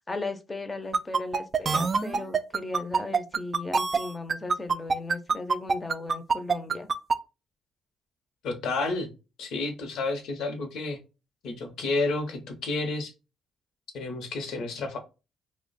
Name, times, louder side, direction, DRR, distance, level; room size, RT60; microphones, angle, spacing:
voice 1, 0.1-6.9, left 2 dB, 20° left, 0.6 m, -36 dB
sound 1, 0.9-7.2, right 5 dB, 40° right, 0.3 m, -24 dB
voice 2, 8.4-9.1 9.4-11.0 11.4-13.1 13.9-15.0, left 3 dB, 80° left, 0.8 m, -30 dB
2.9 x 2.1 x 4.0 m
cardioid pair, 90°, 0 cm